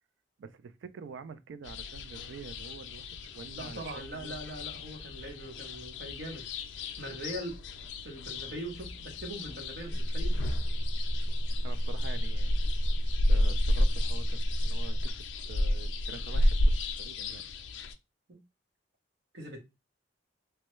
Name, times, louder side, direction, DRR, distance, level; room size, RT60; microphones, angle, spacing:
voice 1, 0.4-4.4 11.6-12.6 13.3-17.4, right 5 dB, 90° right, 0.3 m, -46 dB
sound 1, 1.6-17.9, left 1 dB, 80° left, 0.4 m, -32 dB
voice 2, 3.5-6.5 7.0-7.6 8.0-10.4 18.3-18.4 19.3-19.6, right 1 dB, 65° right, 0.9 m, -41 dB
sound 2, 9.9-15.1, equal, ahead, 0.5 m, -31 dB
3.1 x 2.2 x 3.0 m
head